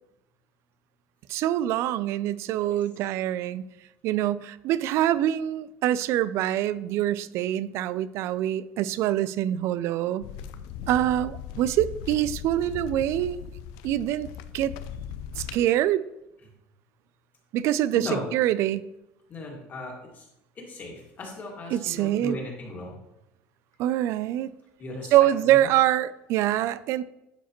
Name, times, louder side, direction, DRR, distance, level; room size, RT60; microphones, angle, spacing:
voice 1, 1.3-3.6 4.0-10.3 10.9-13.4 13.8-14.3 14.5-14.7 15.4-16.0 17.5-18.9 21.7-22.4 23.8-24.5 25.1-27.0, right 12 dB, 60° right, 17 dB, 0.3 m, -25 dB
sound 1, 10.2-15.6, left 8 dB, 85° left, 0.4 m, -38 dB
voice 2, 17.9-18.3 19.3-20.3 20.6-23.0 24.8-25.1 25.5-25.7, left 2 dB, 35° left, -1 dB, 2.0 m, -37 dB
11.0 x 4.7 x 3.0 m, 0.88 s
cardioid pair, 140°, 5 cm